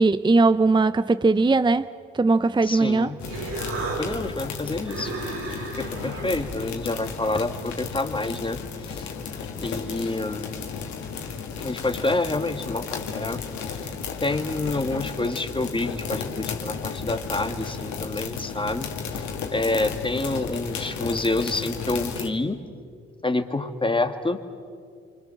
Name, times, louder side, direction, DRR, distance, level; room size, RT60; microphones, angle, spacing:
voice 1, 0.0-1.9 2.1-3.1, right 3 dB, 15° right, 0.6 m, -19 dB
voice 2, 2.6-3.2 4.0-5.1 5.5-9.1 9.6-10.5 11.6-13.4 13.8-13.9 14.2-19.2 19.5-22.6 23.2-24.4, left 2 dB, 15° left, 2.4 m, -28 dB
Human voice, 2.8-8.0, right 3 dB, 85° right, 6.7 m, -36 dB
sound 1, 3.2-22.3, left 6 dB, 75° left, 2.5 m, -34 dB
30.0 x 25.0 x 7.3 m
hypercardioid pair, 50°, 29 cm